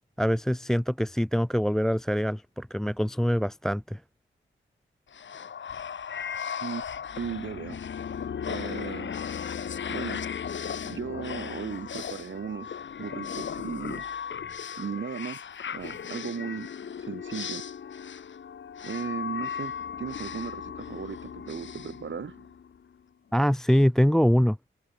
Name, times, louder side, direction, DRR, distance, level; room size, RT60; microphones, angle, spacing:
voice 1, 0.2-4.0 23.3-24.6, equal, ahead, 0.3 m, -24 dB
sound 1, 5.1-22.8, left 7 dB, 60° left, 0.8 m, -36 dB
voice 2, 7.1-7.8 8.5-9.1 9.9-10.2 10.8-14.0 14.8-15.4 15.7-16.7 17.1-17.6 18.8-22.4, right 6 dB, 65° right, 1.4 m, -36 dB
cardioid pair, 55°, 21 cm